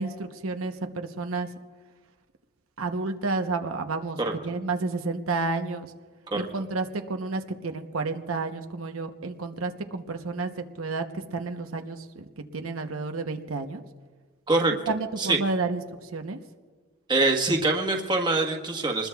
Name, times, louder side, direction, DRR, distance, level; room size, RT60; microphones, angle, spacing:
voice 1, 0.0-1.5 2.8-4.2 4.4-5.9 6.3-13.8 14.9-16.4, right 3 dB, 90° right, 5 dB, 0.9 m, -31 dB
voice 2, 17.1-19.1, right 2 dB, 20° right, 2 dB, 1.3 m, -24 dB
26.5 x 20.5 x 2.3 m, 1.4 s
head